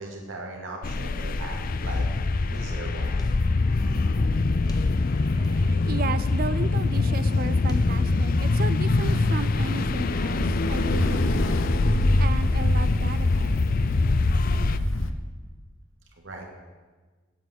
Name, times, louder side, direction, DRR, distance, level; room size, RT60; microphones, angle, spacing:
voice 1, 0.0-2.1 2.5-3.1 16.2-16.4, right 2 dB, 75° right, 0 dB, 2.4 m, -38 dB
sound 1, 0.8-14.8, left 3 dB, 45° left, 0.5 m, -24 dB
sound 2, 3.0-8.2, left 1 dB, 20° left, 1.0 m, -39 dB
voice 2, 5.3-11.6 12.2-13.6, right 4 dB, 50° right, 15 dB, 0.5 m, -34 dB
Ocean, 8.9-15.1, left 1 dB, 85° left, 0.8 m, -26 dB
8.7 x 8.5 x 8.2 m, 1.4 s
head